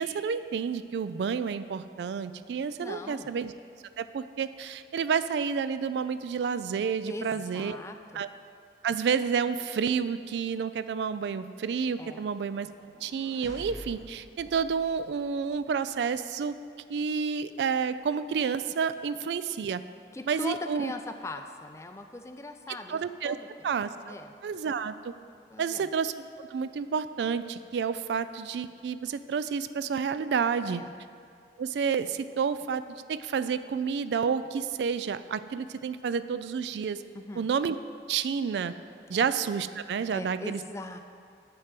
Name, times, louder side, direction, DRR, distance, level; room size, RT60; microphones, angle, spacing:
voice 1, 0.0-3.5 4.0-7.8 8.1-8.3 8.8-12.7 13.0-16.6 16.9-19.8 20.3-20.9 22.9-23.4 23.6-24.1 24.4-25.1 25.6-30.8 31.6-32.8 33.1-37.0 37.4-37.8 38.1-38.7 39.1-40.6, right 6 dB, 75° right, 13 dB, 0.3 m, -30 dB
voice 2, 2.8-3.3 7.1-8.2 12.0-12.3 20.1-23.5 24.1-24.3 25.5-25.9 30.7-30.9 37.1-37.5 39.1-39.2 40.1-41.0, left 2 dB, 15° left, 6 dB, 0.4 m, -40 dB
sound 1, 12.6-15.7, equal, 20° right, 1.0 m, -48 dB
9.7 x 4.4 x 7.6 m, 2.3 s
head